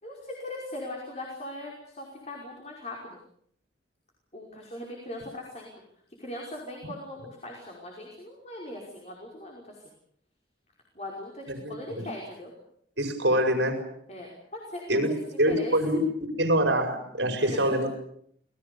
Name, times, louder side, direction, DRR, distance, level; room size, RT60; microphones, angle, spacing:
voice 1, 0.0-3.2 4.3-5.7 6.2-9.8 11.0-12.5 14.1-14.8 15.5-15.9 17.4-17.9, left 1 dB, 35° left, -1 dB, 5.4 m, -40 dB
voice 2, 11.5-12.0 13.0-13.8 14.9-15.1 15.4-17.9, equal, 75° right, 4 dB, 5.5 m, -25 dB
28.0 x 20.5 x 7.0 m, 0.68 s
head